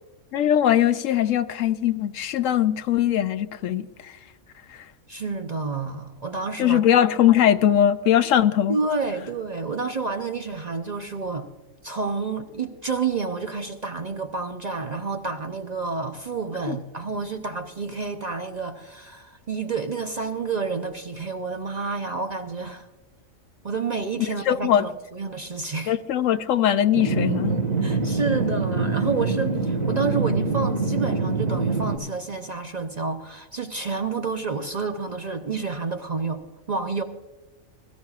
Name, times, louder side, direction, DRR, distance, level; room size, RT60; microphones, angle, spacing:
voice 1, 0.3-4.2 4.7-4.9 6.6-8.8 16.7-16.8 24.5-24.9 25.9-27.6, left 10 dB, 75° left, 12 dB, 0.9 m, -21 dB
voice 2, 5.1-6.9 8.7-11.5 11.8-22.9 23.6-25.9 27.8-37.0, right 4 dB, 40° right, 5 dB, 0.7 m, -29 dB
sound 1, 26.9-32.0, right 3 dB, 75° right, 2.1 m, -24 dB
21.5 x 13.5 x 2.4 m, 1.2 s
omnidirectional pair, 1.4 m